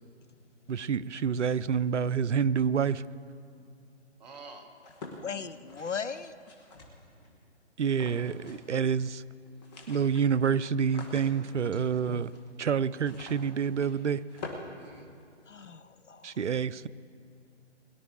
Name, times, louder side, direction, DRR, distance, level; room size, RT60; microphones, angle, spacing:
voice 1, 0.7-3.0 7.8-9.2 9.9-12.3 12.6-14.2 16.2-16.9, right 7 dB, 80° right, 19 dB, 0.6 m, -28 dB
voice 2, 4.2-4.7 7.2-7.3 11.7-11.9 14.7-15.1, right 3 dB, 35° right, 4 dB, 1.6 m, -49 dB
sound 1, 4.8-7.3 7.9-8.8 9.1-9.2 9.5-15.6, left 3 dB, 35° left, 2.2 m, -47 dB
voice 3, 5.2-6.3 15.5-16.3, left 6 dB, 85° left, 14 dB, 0.7 m, -37 dB
22.0 x 12.5 x 3.3 m, 2.3 s
figure-of-eight pair, 140°, 35 cm